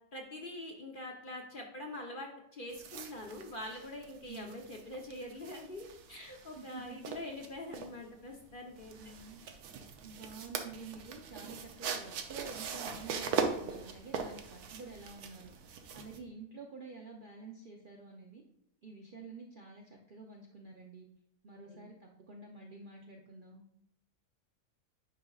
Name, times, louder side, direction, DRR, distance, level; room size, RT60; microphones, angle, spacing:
voice 1, 0.1-8.9 21.7-21.9, left 1 dB, 40° left, 1 dB, 0.9 m, -44 dB
sound 1, 2.7-16.2, right 6 dB, 80° right, 1.2 m, -41 dB
voice 2, 4.3-4.6 6.6-7.0 9.0-9.4 10.0-18.4 18.8-21.1 21.4-23.6, right 4 dB, 50° right, -1 dB, 0.7 m, -49 dB
9.7 x 5.1 x 2.4 m, 0.80 s
omnidirectional pair, 1.6 m